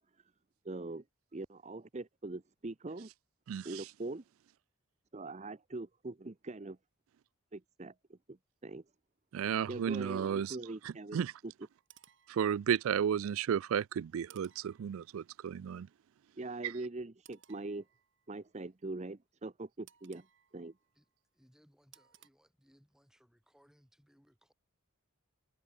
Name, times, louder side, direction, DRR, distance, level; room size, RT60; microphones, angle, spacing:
voice 1, 0.6-1.0 1.3-3.1 3.6-4.2 5.1-6.8 7.5-8.4 8.6-8.8 9.7-11.2 16.4-17.8 18.3-20.3 20.5-20.7, right 2 dB, 30° right, 0.7 m, -42 dB
voice 2, 9.3-10.6 10.8-11.3 12.3-15.9 16.6-16.7, right 8 dB, 75° right, 0.3 m, -33 dB
sound 1, 11.7-13.1 14.3-15.5 17.3-18.5 19.9-21.2 21.9-22.3, right 11 dB, 60° right, 2.2 m, -63 dB
voice 3, 20.9-24.5, equal, ahead, 7.7 m, -68 dB
head